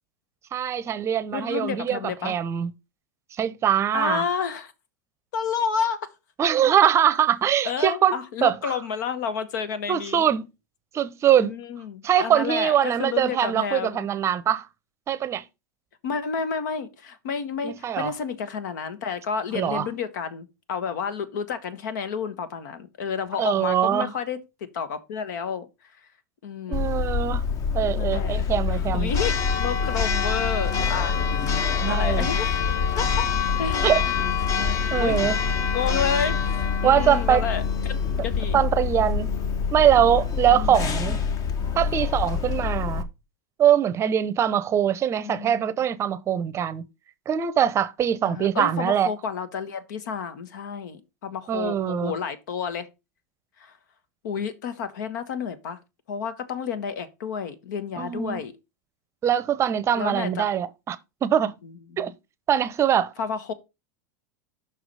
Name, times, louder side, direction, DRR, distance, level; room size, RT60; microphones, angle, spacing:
voice 1, 0.5-2.7 3.4-4.2 6.4-8.8 9.9-10.5 10.9-11.5 12.0-14.7 15.1-15.4 17.6-18.1 19.5-19.9 23.4-24.1 26.7-27.5 27.7-29.1 31.8-32.3 33.8-34.0 34.9-35.4 36.8-37.5 38.5-39.3 39.7-41.2 41.8-43.0 43.6-46.8 47.3-49.1 51.5-52.1 58.0-58.4 59.2-61.5 62.0-62.1 62.5-63.1, right 9 dB, 30° right, 0.7 m, -22 dB
voice 2, 1.3-2.3 3.9-4.7 5.3-6.0 7.6-10.3 11.4-14.1 16.0-25.7 26.4-26.8 28.0-28.4 28.7-32.5 33.0-33.2 33.6-34.1 34.5-35.2 35.7-36.6 36.8-38.6 40.5-40.8 45.2-45.7 48.2-52.9 53.6-53.7 54.2-55.8 56.1-58.5 60.0-60.5 61.6-61.7 63.2-63.5, left 6 dB, 75° left, 1.3 m, -30 dB
Church bell, 26.7-43.0, left 6 dB, 35° left, 1.1 m, -25 dB
5.8 x 4.8 x 5.4 m
hypercardioid pair, 115°, 10 cm